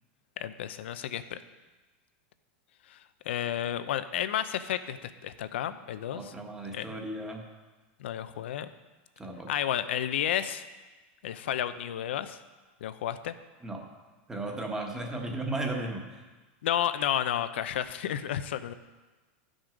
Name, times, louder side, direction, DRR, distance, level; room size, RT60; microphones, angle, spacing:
voice 1, 0.4-1.4 2.9-3.0 3.3-6.3 6.7-7.0 8.0-8.7 9.5-10.6 11.2-12.4 12.8-13.3 16.6-18.7, left 10 dB, 85° left, 12 dB, 0.6 m, -31 dB
voice 2, 6.1-7.4 9.2-9.5 13.6-13.9 14.3-16.2, right 2 dB, 10° right, 1 dB, 1.3 m, -35 dB
13.5 x 6.3 x 5.1 m, 1.2 s
supercardioid pair, 155°, 6 cm